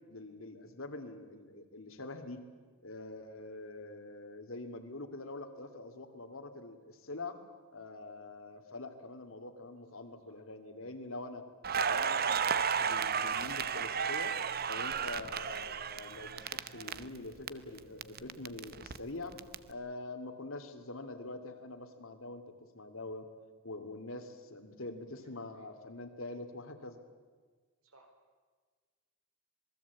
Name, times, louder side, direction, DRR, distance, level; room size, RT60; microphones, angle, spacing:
voice 1, 0.1-2.4 2.8-7.4 7.7-11.4 11.8-14.3 14.6-23.3 23.6-27.0, left 2 dB, 70° left, 7 dB, 2.6 m, -45 dB
voice 2, 9.8-10.4 25.1-25.7 27.8-28.1, right 2 dB, 85° right, 5 dB, 4.3 m, -64 dB
Crackle, 11.6-17.5 17.8-19.5, right 7 dB, 45° right, 0.8 m, -33 dB
27.0 x 20.0 x 8.4 m, 1.5 s
head